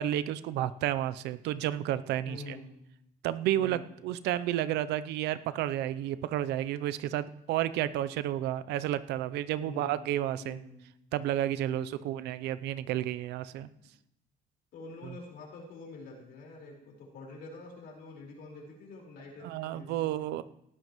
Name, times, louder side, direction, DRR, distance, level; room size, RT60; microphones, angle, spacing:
voice 1, 0.0-2.6 3.2-10.6 11.1-13.7 15.0-15.1 19.4-20.4, right 12 dB, 85° right, 15 dB, 0.6 m, -31 dB
voice 2, 2.2-2.7 3.6-3.9 9.6-10.8 11.7-12.1 14.7-20.4, left 3 dB, 70° left, -1 dB, 4.6 m, -47 dB
18.0 x 12.0 x 3.1 m, 0.80 s
cardioid pair, 110°, 17 cm